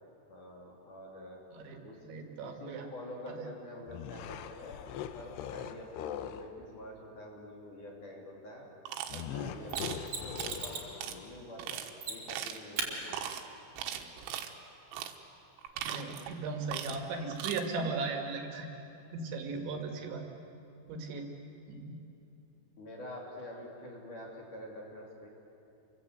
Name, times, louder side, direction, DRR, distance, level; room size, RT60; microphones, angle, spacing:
voice 1, 0.3-1.4 1.8-2.1 2.4-8.7 9.1-11.8 12.1-13.2 19.5-19.8 22.8-25.3, left 1 dB, 45° left, -1 dB, 3.9 m, -47 dB
voice 2, 2.0-2.9 3.3-3.5 15.8-18.7 19.1-20.2 20.9-21.3 21.7-21.9, right 4 dB, 65° right, 3 dB, 4.0 m, -37 dB
sound 1, 3.9-6.5 9.1-11.4, left 9 dB, 75° left, 2.5 m, -41 dB
sound 2, 8.9-9.3 9.7-10.0 10.4-10.6 11.0-11.2 11.6-11.9 12.3-12.7 13.1-13.4 13.8-14.5 14.9-15.2 15.6-16.3 16.7-17.1 17.3-17.6, right 10 dB, 90° right, 4.0 m, -39 dB
Mechanisms, 9.7-10.9 12.0-12.4 12.8-12.9 15.7-15.8, right 5 dB, 35° right, 4.0 m, -37 dB
29.0 x 24.0 x 8.1 m, 2.8 s
omnidirectional pair, 5.9 m